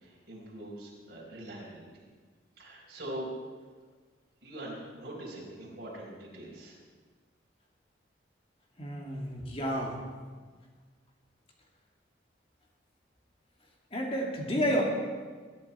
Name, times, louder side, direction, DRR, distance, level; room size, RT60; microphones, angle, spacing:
voice 1, 0.0-1.8 2.6-3.3 4.4-6.8, right 1 dB, 55° right, -5 dB, 4.9 m, -42 dB
voice 2, 8.8-10.0 13.9-14.8, equal, 30° left, -1 dB, 2.5 m, -30 dB
22.0 x 11.0 x 4.5 m, 1.5 s
head